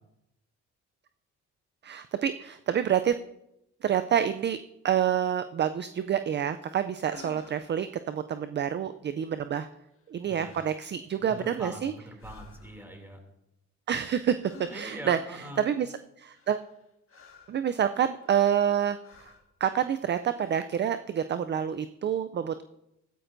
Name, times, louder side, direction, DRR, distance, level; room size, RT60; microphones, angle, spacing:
voice 1, 1.8-3.1 3.8-4.6 4.8-9.7 10.1-11.9 13.9-16.6 17.5-19.3 19.6-22.6, right 9 dB, 35° right, 11 dB, 0.4 m, -28 dB
sound 1, 7.1-7.8 9.9-10.2 10.4-10.9 11.3-11.8 12.2-12.9 14.4-15.2 16.3-17.6 18.2-18.7 19.0-19.5 20.2-20.7, left 4 dB, 45° left, 1.7 m, -53 dB
voice 2, 11.2-13.2 14.7-15.7, equal, 5° right, 3 dB, 2.6 m, -42 dB
15.0 x 12.5 x 2.6 m, 0.85 s
cardioid pair, 90°, 30 cm